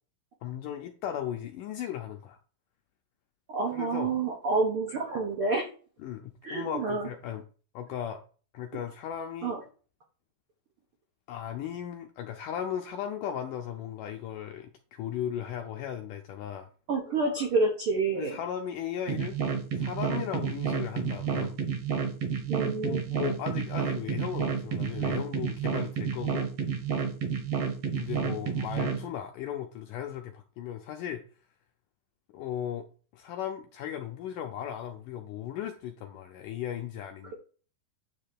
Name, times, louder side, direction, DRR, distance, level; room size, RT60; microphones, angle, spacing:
voice 1, 0.4-2.4 3.7-4.2 6.0-7.4 7.7-8.2 8.5-9.5 11.3-16.7 18.2-19.4 19.7-21.6 22.8-26.5 28.0-31.2 32.3-32.9 33.1-37.3, left 9 dB, 80° left, 1.9 m, -36 dB
voice 2, 3.5-5.7 6.4-7.1 9.4-9.6 16.9-18.4 22.5-23.0, right 3 dB, 75° right, 1.2 m, -28 dB
sound 1, 19.1-29.0, right 6 dB, 55° right, 1.8 m, -30 dB
9.6 x 3.3 x 6.6 m
omnidirectional pair, 4.5 m